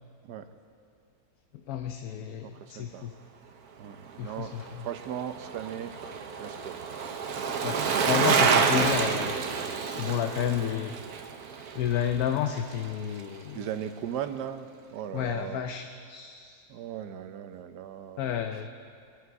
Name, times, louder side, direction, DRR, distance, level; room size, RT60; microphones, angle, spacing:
voice 1, 1.5-3.1 4.2-4.9 7.6-9.4 9.9-11.0 11.7-13.7 15.1-16.6 18.2-18.7, left 9 dB, 70° left, 6 dB, 1.1 m, -31 dB
voice 2, 2.4-3.1 3.8-5.9 6.4-6.8 13.5-15.6 16.7-18.2, right 9 dB, 90° right, 10 dB, 1.3 m, -38 dB
Bicycle, 4.5-12.9 13.2-13.3, right 5 dB, 70° right, 1.4 m, -28 dB
24.5 x 10.5 x 4.7 m, 2.4 s
omnidirectional pair, 1.7 m